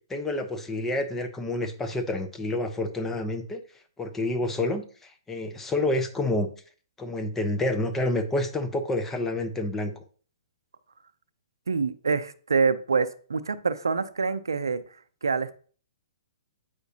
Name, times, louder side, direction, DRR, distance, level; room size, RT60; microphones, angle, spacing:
voice 1, 0.1-3.6 4.0-6.5 7.0-10.0, left 2 dB, 10° left, 7 dB, 0.7 m, -28 dB
voice 2, 11.7-14.8 15.2-15.6, right 4 dB, 85° right, 13 dB, 0.5 m, -26 dB
8.0 x 5.1 x 2.8 m, 0.42 s
hypercardioid pair, 130°, 2 cm